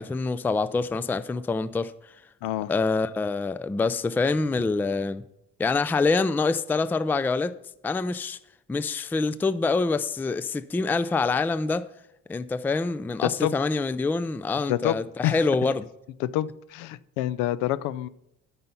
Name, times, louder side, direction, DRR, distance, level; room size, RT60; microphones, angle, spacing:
voice 1, 0.0-1.9 2.7-5.2 5.6-7.5 7.8-8.4 8.7-11.9 12.3-15.9, left 3 dB, 5° left, 0.3 m, -26 dB
voice 2, 13.2-13.5 14.7-15.0 15.2-15.5 16.2-18.1, left 14 dB, 85° left, 0.5 m, -27 dB
9.4 x 5.6 x 5.7 m
supercardioid pair, 90°, 30 cm